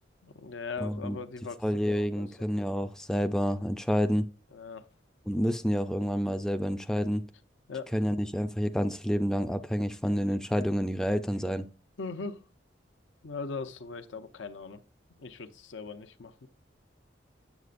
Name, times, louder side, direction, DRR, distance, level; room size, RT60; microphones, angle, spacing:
voice 1, 0.2-1.6 1.9-2.5 4.5-4.9 7.7-7.9 12.0-12.4 13.2-14.8 15.2-16.5, left 4 dB, 85° left, 0.7 m, -40 dB
voice 2, 0.8-1.2 1.6-4.3 5.3-7.3 7.9-11.7, equal, 5° left, 0.3 m, -29 dB
8.1 x 7.4 x 2.5 m
head